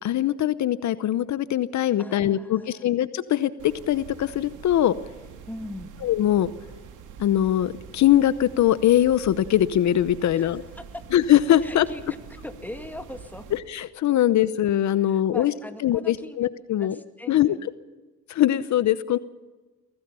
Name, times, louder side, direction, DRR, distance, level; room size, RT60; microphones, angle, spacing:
voice 1, 0.0-4.9 6.0-6.5 7.2-10.6 11.1-11.9 13.5-15.5 15.8-17.0 17.3-17.7 18.3-19.2, left 12 dB, 70° left, 15 dB, 0.9 m, -22 dB
voice 2, 2.0-2.9 5.5-5.9 10.3-11.0 11.6-12.2 12.4-13.4 15.0-16.4 16.8-17.7, left 1 dB, 5° left, 7 dB, 2.3 m, -40 dB
sound 1, 3.6-13.6, right 7 dB, 85° right, 2.7 m, -45 dB
24.0 x 17.0 x 7.0 m, 1.2 s
cardioid pair, 90°, 30 cm